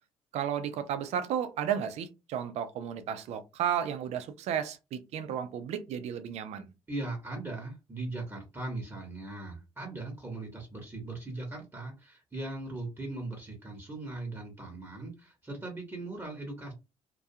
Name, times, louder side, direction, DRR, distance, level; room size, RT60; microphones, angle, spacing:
voice 1, 0.3-6.7, right 9 dB, 75° right, 0.5 m, -33 dB
voice 2, 6.9-16.7, right 2 dB, 20° right, 1.0 m, -39 dB
2.3 x 2.2 x 2.7 m
supercardioid pair, 75°, 12 cm